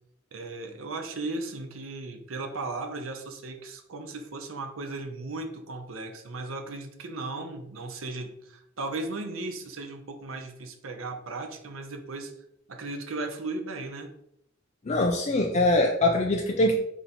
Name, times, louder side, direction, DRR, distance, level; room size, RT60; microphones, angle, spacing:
voice 1, 0.3-12.3 12.7-14.1, right 2 dB, 80° right, 5 dB, 0.7 m, -36 dB
voice 2, 14.9-16.8, left 1 dB, 35° left, 1 dB, 0.4 m, -23 dB
3.9 x 3.0 x 4.2 m, 0.76 s
head